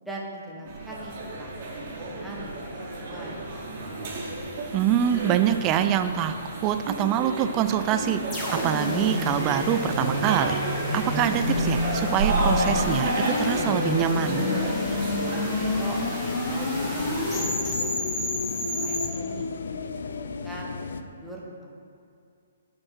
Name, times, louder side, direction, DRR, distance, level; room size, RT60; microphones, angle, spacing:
voice 1, 0.0-2.6 3.0-3.4 15.1-16.0 16.3-17.1 17.5-18.0 18.7-19.8 20.2-21.8, right 1 dB, ahead, -5 dB, 1.6 m, -42 dB
sound 1, 0.7-17.5, right 2 dB, 40° right, 2.4 m, -32 dB
sound 2, 1.3-21.0, left 4 dB, 60° left, 0.6 m, -36 dB
voice 2, 4.7-6.3 6.6-8.4 8.6-14.5, right 10 dB, 25° right, 9 dB, 0.5 m, -25 dB
sound 3, 8.3-19.1, left 2 dB, 20° left, 2.1 m, -29 dB
9.1 x 5.2 x 6.3 m, 2.5 s
figure-of-eight pair, 125°, 0 cm